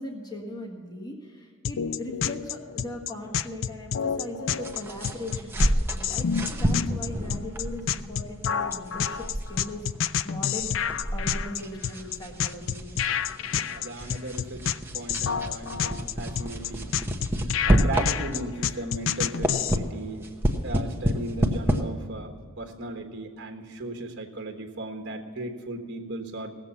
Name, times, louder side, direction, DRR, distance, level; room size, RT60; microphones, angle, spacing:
voice 1, 0.0-9.9 10.2-10.8 11.1-12.9, left 1 dB, 20° left, 0 dB, 1.5 m, -39 dB
sound 1, 1.6-19.8, left 8 dB, 60° left, 0.4 m, -29 dB
sound 2, 4.6-18.6 19.0-21.8, equal, 10° right, 0.9 m, -29 dB
voice 2, 13.6-17.0 17.7-20.3 20.6-26.6, right 1 dB, 55° right, 3 dB, 1.3 m, -36 dB
17.5 x 7.5 x 6.9 m, 2.1 s
head